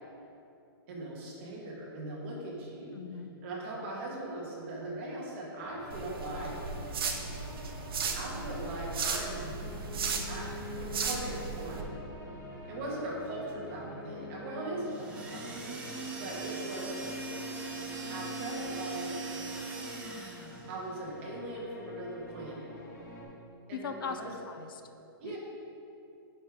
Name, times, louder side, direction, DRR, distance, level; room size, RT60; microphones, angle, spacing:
voice 1, 0.9-3.0 3.4-6.6 8.1-9.5 10.3-12.0 12.7-15.8 16.2-17.0 18.1-19.4 20.7-22.7 23.7-24.3 25.2-25.4, right 1 dB, 30° right, -4 dB, 1.5 m, -40 dB
voice 2, 2.9-3.3 23.7-24.2 24.5-24.8 25.2-25.4, left 7 dB, 60° left, 8 dB, 0.5 m, -39 dB
sound 1, 5.6-23.2, left 1 dB, 45° left, 1.4 m, -46 dB
sound 2, 5.9-11.8, right 5 dB, 70° right, 0.9 m, -36 dB
sound 3, 14.8-20.7, right 3 dB, 10° right, 0.5 m, -40 dB
9.5 x 5.2 x 3.6 m, 2.8 s
hypercardioid pair, 175°, 13 cm